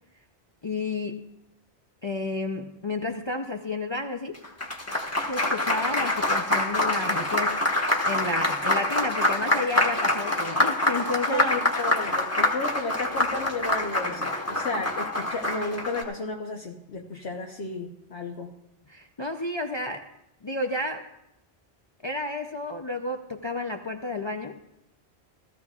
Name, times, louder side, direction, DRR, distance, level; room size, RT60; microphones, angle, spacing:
voice 1, 0.6-1.3 2.0-4.4 5.3-11.4 17.1-17.2 18.9-20.1 20.4-21.1 22.0-24.6, left 2 dB, 30° left, 4 dB, 0.5 m, -31 dB
Applause, 4.3-16.0, left 1 dB, 15° left, 1.2 m, -26 dB
voice 2, 11.3-18.5, left 3 dB, 70° left, 0 dB, 1.2 m, -33 dB
16.5 x 14.0 x 2.4 m, 0.86 s
omnidirectional pair, 1.1 m